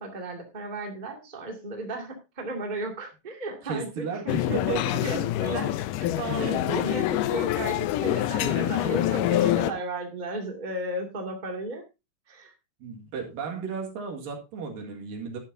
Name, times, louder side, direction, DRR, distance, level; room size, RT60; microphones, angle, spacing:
voice 1, 0.0-4.3 5.0-11.8 12.3-12.5, right 2 dB, 15° right, 1 dB, 1.9 m, -34 dB
voice 2, 3.6-5.2 6.3-7.0 8.5-8.8 12.8-15.4, right 5 dB, 75° right, 2 dB, 3.6 m, -34 dB
sound 1, 4.3-9.7, left 14 dB, 75° left, 2.2 m, -26 dB
11.5 x 11.5 x 2.7 m, 0.26 s
omnidirectional pair, 4.0 m